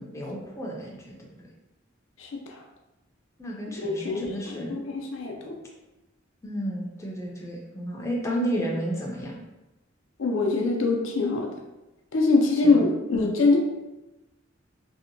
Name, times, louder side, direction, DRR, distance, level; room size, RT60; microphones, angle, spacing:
voice 1, 0.0-1.5 3.4-4.8 6.4-9.4 12.6-12.8 13.1-13.3, equal, 15° left, -3 dB, 0.4 m, -32 dB
voice 2, 2.2-2.6 3.8-5.6 10.2-11.5 12.1-13.6, left 3 dB, 90° left, 1 dB, 0.5 m, -24 dB
2.7 x 2.1 x 2.6 m, 1.0 s
head